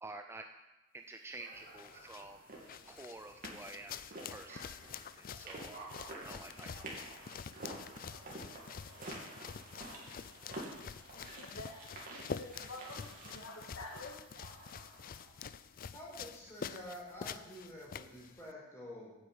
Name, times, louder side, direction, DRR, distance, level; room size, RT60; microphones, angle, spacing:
voice 1, 0.0-0.4 0.9-2.4 2.9-3.9 4.3-4.7 5.2-6.9, right 2 dB, 15° right, 5 dB, 0.5 m, -49 dB
sound 1, 1.4-15.4, right 2 dB, 45° right, 2.8 m, -50 dB
sound 2, 1.5-18.5, left 6 dB, 45° left, 0.4 m, -47 dB
voice 2, 11.1-14.2, left 2 dB, 80° left, 1 dB, 1.8 m, -49 dB
voice 3, 15.9-19.1, left 1 dB, 15° left, -5 dB, 4.7 m, -48 dB
9.2 x 8.7 x 8.0 m, 1.0 s
head